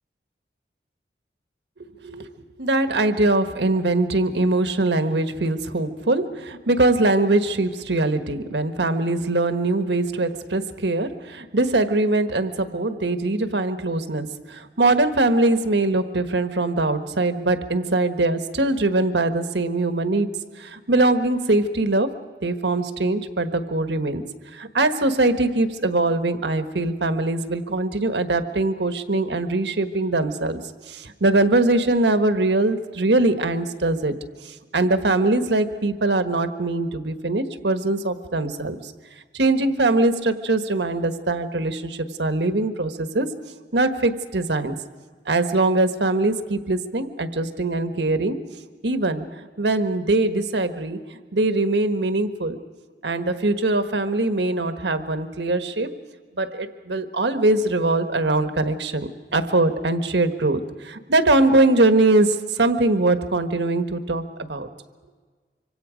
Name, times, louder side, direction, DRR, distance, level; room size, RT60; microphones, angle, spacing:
voice 1, 2.6-20.3 20.6-22.1 22.4-24.2 24.5-30.6 30.9-34.1 34.4-38.9 39.3-43.3 43.7-44.8 45.3-48.4 48.8-49.3 49.6-51.0 51.3-52.6 53.0-56.0 56.4-64.7, right 2 dB, 85° right, 9 dB, 1.4 m, -22 dB
25.5 x 25.5 x 5.1 m, 1.5 s
head